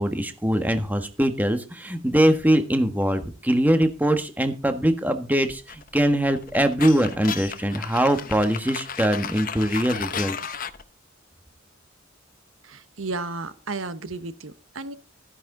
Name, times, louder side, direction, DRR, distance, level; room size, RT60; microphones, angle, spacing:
voice 1, 0.0-10.4, right 1 dB, 10° right, 7 dB, 1.4 m, -22 dB
sound 1, 5.7-10.8, left 7 dB, 45° left, 0.9 m, -34 dB
voice 2, 12.6-15.0, right 3 dB, 85° right, 12 dB, 1.2 m, -33 dB
14.5 x 10.5 x 3.9 m, 0.31 s
head